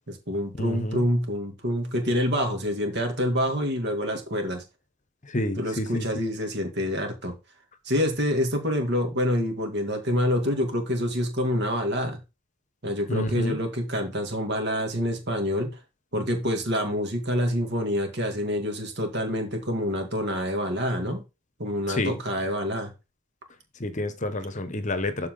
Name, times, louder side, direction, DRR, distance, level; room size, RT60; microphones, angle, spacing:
voice 1, 0.1-4.6 5.6-7.3 7.9-12.2 12.8-15.8 16.1-21.2 21.6-22.9, equal, 50° right, 2.6 m, -27 dB
voice 2, 0.6-1.0 5.2-6.1 13.1-13.6 21.9-22.2 23.8-25.3, left 1 dB, 35° left, 1.0 m, -29 dB
12.5 x 4.6 x 3.9 m
head